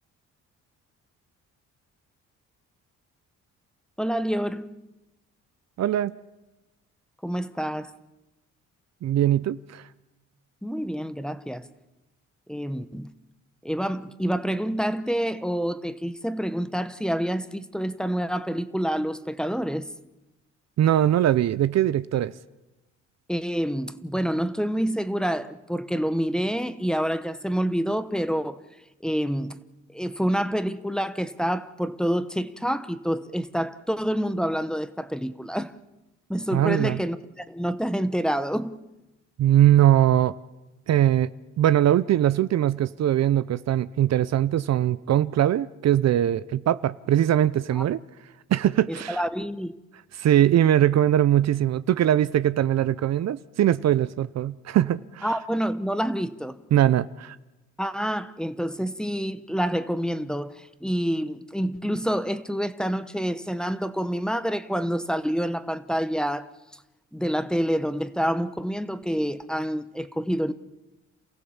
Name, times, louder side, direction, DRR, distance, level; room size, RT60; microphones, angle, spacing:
voice 1, 4.0-4.8 7.2-7.9 10.6-11.7 12.5-13.1 13.6-19.9 23.3-28.6 29.0-35.7 36.3-38.8 47.8-47.9 48.9-49.8 55.2-56.6 57.8-66.5 67.1-70.5, equal, ahead, 1.0 m, -27 dB
voice 2, 5.8-6.1 9.0-9.8 20.8-22.3 36.5-37.0 39.4-40.3 40.9-41.3 41.6-48.0 48.5-49.2 50.1-55.3 56.7-57.4, right 11 dB, 60° right, 0.7 m, -21 dB
28.5 x 15.5 x 7.3 m
cardioid pair, 90°, 30 cm